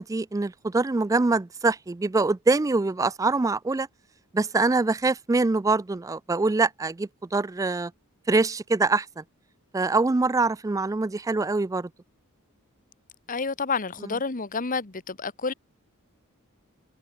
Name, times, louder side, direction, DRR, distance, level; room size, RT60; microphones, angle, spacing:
voice 1, 0.0-3.9 4.3-7.9 8.3-9.2 9.7-11.9 14.0-14.1, right 3 dB, 15° right, 0.3 m, -24 dB
voice 2, 13.3-15.5, left 4 dB, 40° left, 1.2 m, -29 dB
head